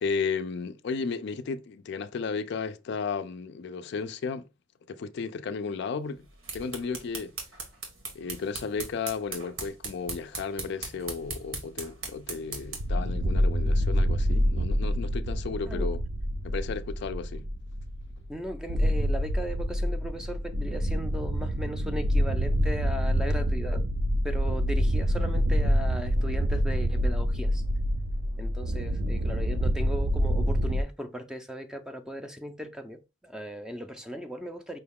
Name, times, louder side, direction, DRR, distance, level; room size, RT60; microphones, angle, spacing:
voice 1, 0.0-4.5 4.9-6.2 6.5-7.3 8.1-16.0 16.4-17.5, left 5 dB, 60° left, 0.4 m, -34 dB
sound 1, 6.2-13.0, right 3 dB, 80° right, 1.4 m, -39 dB
sound 2, 12.6-30.8, equal, 65° right, 0.6 m, -27 dB
voice 2, 18.3-23.8 24.2-27.6 28.4-34.8, equal, 5° right, 0.4 m, -37 dB
5.3 x 2.3 x 3.5 m
head